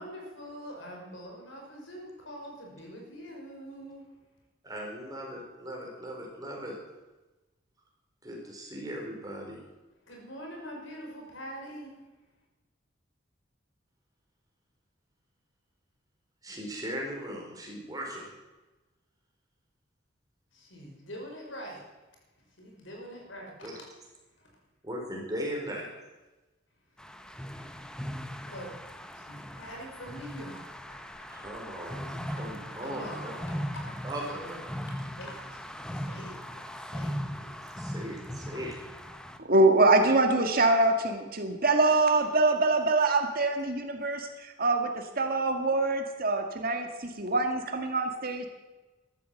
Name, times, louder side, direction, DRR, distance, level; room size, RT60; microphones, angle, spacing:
voice 1, 0.0-4.1 10.1-11.9 20.5-21.8 22.6-23.8 24.4-24.5 27.3-27.4 28.4-28.7 29.1-31.3 31.7-31.9 32.3-32.4 32.7-34.0 34.3-37.5 39.1-39.4, equal, 75° left, 0 dB, 5.5 m, -45 dB
voice 2, 4.6-6.7 8.2-9.6 16.4-18.3 23.6-23.8 24.8-25.9 31.3-33.3 34.0-34.6 37.3-37.5 37.8-38.8, equal, 20° right, -1 dB, 4.5 m, -38 dB
sound 1, 27.0-39.4, equal, 5° left, 1.0 m, -39 dB
voice 3, 39.4-48.5, right 2 dB, 50° right, 5 dB, 1.8 m, -24 dB
14.0 x 13.0 x 7.7 m, 1.1 s
head